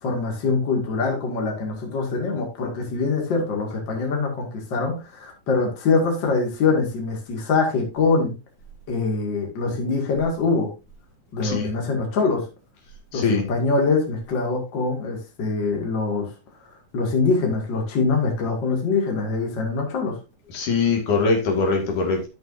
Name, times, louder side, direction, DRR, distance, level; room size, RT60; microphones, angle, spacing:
voice 1, 0.0-8.3 8.9-10.7 11.3-12.5 13.1-16.3 16.9-20.1, left 4 dB, 40° left, 1 dB, 2.5 m, -23 dB
voice 2, 13.1-13.4 20.5-22.3, left 4 dB, 75° left, 2 dB, 3.4 m, -22 dB
12.5 x 6.3 x 2.6 m, 0.29 s
omnidirectional pair, 3.6 m